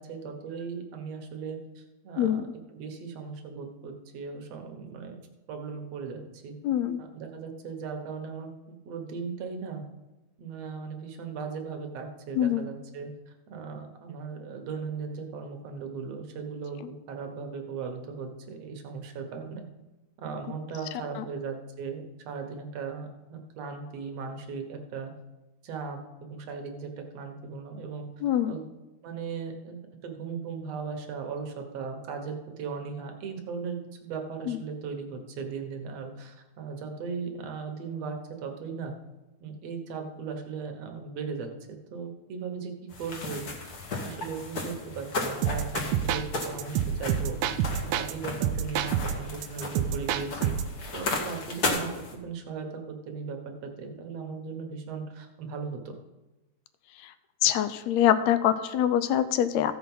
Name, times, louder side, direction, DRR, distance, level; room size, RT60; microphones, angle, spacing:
voice 1, 0.0-2.4 2.7-5.2 5.5-6.5 7.0-9.8 10.4-13.1 13.5-16.8 17.1-19.6 20.2-25.1 25.6-28.1 28.5-28.6 29.0-38.9 39.4-42.7 43.0-43.8 44.0-47.4 47.8-50.6 50.9-51.9 52.2-56.0, right 5 dB, 65° right, 4 dB, 2.1 m, -37 dB
voice 2, 6.6-7.0 12.3-12.7 21.2-21.3 28.2-28.5 34.5-34.6 57.0-57.1 57.4-59.8, left 10 dB, 80° left, 12 dB, 1.7 m, -24 dB
sound 1, 42.9-52.1, left 2 dB, 40° left, 1.6 m, -35 dB
sound 2, 45.4-48.1 48.4-50.8, right 9 dB, 80° right, 1.7 m, -28 dB
15.0 x 5.9 x 5.5 m, 1.1 s
omnidirectional pair, 3.4 m